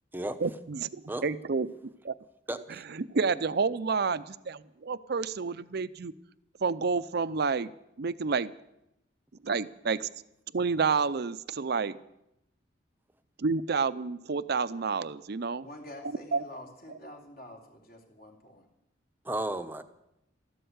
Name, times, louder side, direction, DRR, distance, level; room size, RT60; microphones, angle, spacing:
voice 1, 0.4-1.7 2.0-2.1 2.9-6.1 6.6-7.7 8.0-8.5 9.4-10.1 10.5-12.0 13.4-15.7 16.3-16.4, right 5 dB, 55° right, 15 dB, 0.6 m, -29 dB
voice 2, 2.5-2.8 19.2-19.8, right 1 dB, 10° right, 9 dB, 0.8 m, -33 dB
voice 3, 15.6-18.7, left 1 dB, 50° left, 0 dB, 3.0 m, -47 dB
13.5 x 12.5 x 8.0 m, 0.86 s
head